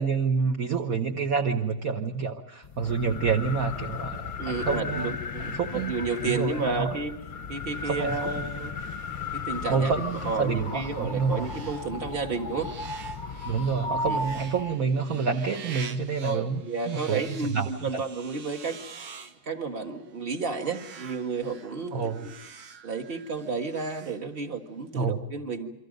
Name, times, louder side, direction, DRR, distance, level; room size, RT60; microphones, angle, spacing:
voice 1, 0.0-4.3 4.7-5.1 5.5-6.0 6.2-6.9 7.8-8.3 9.7-11.5 13.5-16.6 16.9-17.2 17.5-17.7 21.9-22.3 24.9-25.2, right 5 dB, 50° right, 5 dB, 1.4 m, -28 dB
sound 1, 2.6-14.8, left 4 dB, 35° left, 0.8 m, -35 dB
voice 2, 4.4-7.1 7.5-8.7 9.3-12.8 13.8-14.2 16.2-18.8 19.4-22.3 22.8-25.7, right 4 dB, 30° right, 5 dB, 1.8 m, -32 dB
sound 2, 8.8-24.7, right 6 dB, 75° right, 2.2 m, -48 dB
29.0 x 24.5 x 5.3 m, 0.89 s
omnidirectional pair, 2.2 m